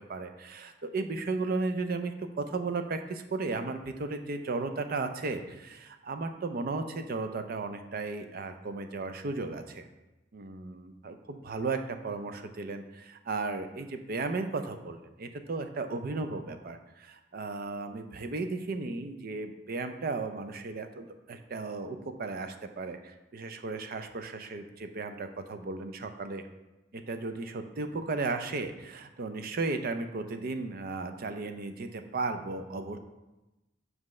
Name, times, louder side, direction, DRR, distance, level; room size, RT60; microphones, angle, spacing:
voice 1, 0.1-9.9 10.3-26.4 26.9-33.0, right 3 dB, 55° right, 8 dB, 0.5 m, -35 dB
7.5 x 4.7 x 3.1 m, 1.0 s
head